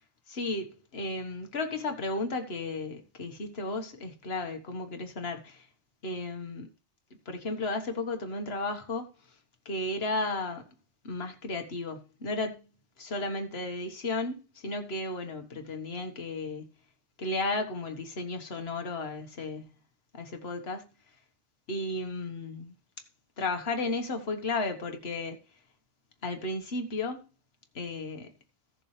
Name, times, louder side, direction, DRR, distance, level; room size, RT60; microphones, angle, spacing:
voice 1, 0.3-5.7 6.0-6.7 7.3-9.1 9.7-10.7 11.0-12.6 13.0-16.7 17.2-19.7 20.1-20.8 21.7-22.7 23.4-25.4 26.2-27.3 27.8-28.3, left 2 dB, 55° left, 1.8 m, -34 dB
16.5 x 7.2 x 3.3 m
omnidirectional pair, 1.2 m